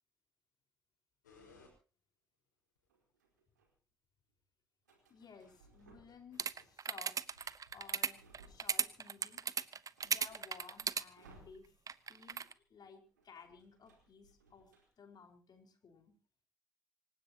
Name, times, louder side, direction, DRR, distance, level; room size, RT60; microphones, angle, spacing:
sound 1, 1.2-1.7 2.8-2.9 4.9-6.7 7.3-7.4, left 4 dB, 85° left, 5.2 m, -62 dB
sound 2, 2.9-3.7 4.9-6.3 6.6-9.1 9.5-9.6 9.8-12.1 12.3-12.5 12.7-14.8, right 2 dB, 85° right, 4.3 m, -64 dB
voice 1, 5.1-9.4 10.0-11.7 12.1-16.2, left 6 dB, 45° left, 5 dB, 4.9 m, -57 dB
sound 3, 6.4-11.0 11.9-12.5, right 6 dB, 40° right, 1.0 m, -36 dB
26.5 x 16.0 x 3.0 m, 0.34 s
hypercardioid pair, 50°, 9 cm